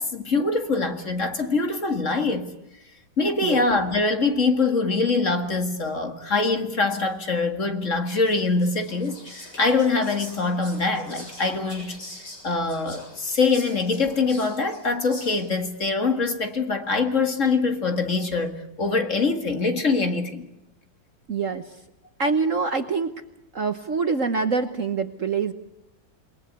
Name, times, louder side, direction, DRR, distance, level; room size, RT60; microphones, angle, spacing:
voice 1, 0.0-2.5 3.2-12.0 12.4-20.5, left 3 dB, 40° left, 2.2 m, -24 dB
Whispering, 8.1-15.7, left 1 dB, 55° left, 7.9 m, -43 dB
voice 2, 21.3-21.8 22.2-23.1 23.5-25.5, right 4 dB, 45° right, 1.3 m, -25 dB
28.0 x 21.0 x 8.2 m
omnidirectional pair, 2.2 m